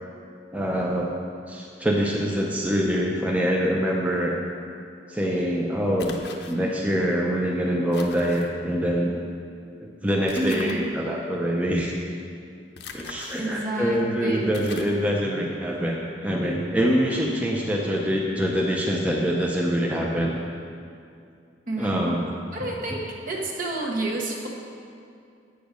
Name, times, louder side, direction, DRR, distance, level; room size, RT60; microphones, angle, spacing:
voice 1, 0.5-1.2 1.5-4.4 5.1-6.2 6.5-9.1 9.8-11.9 12.9-16.0 16.2-20.3 21.8-22.2, equal, 10° right, -3 dB, 0.6 m, -24 dB
sound 1, 6.0-6.5 7.9-8.5 10.3-10.8 12.8-13.4 14.0-14.1 14.5-15.0, left 5 dB, 65° left, 0.8 m, -40 dB
voice 2, 10.3-10.9 13.4-14.5 21.7-22.1 22.5-24.5, right 2 dB, 50° right, -1 dB, 1.3 m, -29 dB
9.0 x 6.8 x 5.2 m, 2.4 s
head